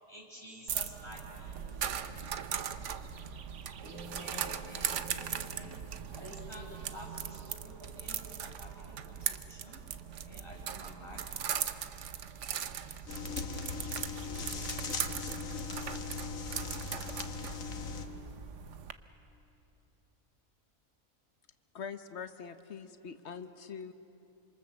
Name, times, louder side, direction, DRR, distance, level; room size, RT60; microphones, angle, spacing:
voice 1, 0.1-1.6 3.8-5.7 6.1-9.8 10.1-11.2, equal, 20° right, -2 dB, 5.2 m, -49 dB
sound 1, 0.7-18.9, right 8 dB, 65° right, 1.1 m, -39 dB
voice 2, 1.4-2.7 5.0-6.0, right 2 dB, 40° right, -6 dB, 5.2 m, -56 dB
sound 2, 13.1-18.1, left 5 dB, 75° left, 1.7 m, -39 dB
voice 3, 21.7-23.9, left 6 dB, 55° left, 10 dB, 1.3 m, -43 dB
27.0 x 26.0 x 7.2 m, 2.8 s
omnidirectional pair, 1.4 m